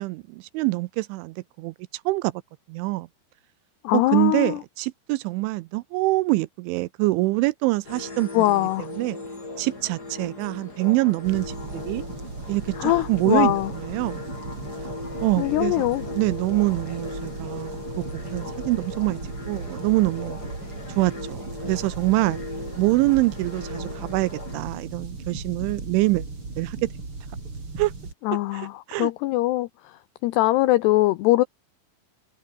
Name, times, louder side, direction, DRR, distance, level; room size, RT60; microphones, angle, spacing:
voice 1, 0.0-1.7 2.1-2.3 2.7-3.1 3.9-8.4 9.0-9.2 9.6-11.6 11.9-12.0 12.5-14.2 15.2-15.9 16.1-19.2 19.5-20.4 20.9-22.4 22.8-26.3 26.6-26.9 27.8-27.9 28.5-29.1, right 21 dB, 80° right, 3.0 m, -25 dB
voice 2, 3.8-4.6 8.3-8.9 12.8-13.7 15.4-16.1 28.2-29.7 30.2-31.4, left 17 dB, 80° left, 2.4 m, -22 dB
sound 1, 7.8-24.6, left 2 dB, 20° left, 5.4 m, -38 dB
sound 2, 11.2-28.1, right 3 dB, 25° right, 6.0 m, -37 dB
omnidirectional pair, 5.6 m